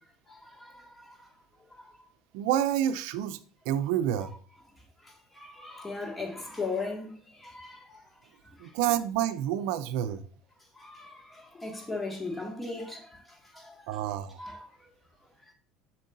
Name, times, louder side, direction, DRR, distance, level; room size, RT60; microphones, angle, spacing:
voice 1, 0.3-1.3 1.8-1.9 5.0-8.0 8.6-8.7 10.8-13.9 14.4-14.9, left 3 dB, 10° left, 1.9 m, -38 dB
voice 2, 2.3-3.4 3.7-4.3 8.6-10.2 13.9-14.4, right 11 dB, 75° right, 0.5 m, -28 dB
7.7 x 6.1 x 2.6 m
supercardioid pair, 120°, 0 cm